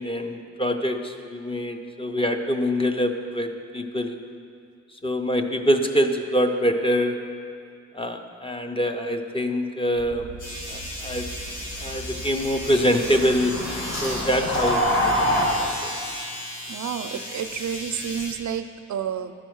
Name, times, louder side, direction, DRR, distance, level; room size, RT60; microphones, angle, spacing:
voice 1, 0.0-3.5 3.7-4.2 5.0-7.2 7.9-10.4 10.7-11.3 11.8-13.5 14.0-15.9, equal, 20° left, 5 dB, 0.4 m, -25 dB
sound 1, 10.0-15.5, equal, 40° left, 1.6 m, -28 dB
sound 2, 10.4-18.3, left 1 dB, 80° left, 1.5 m, -36 dB
sound 3, 11.9-18.4, left 1 dB, 65° left, 1.4 m, -44 dB
voice 2, 16.7-19.3, right 8 dB, 75° right, 10 dB, 0.5 m, -30 dB
11.5 x 4.5 x 6.3 m, 2.4 s
wide cardioid pair, 170°, 30 cm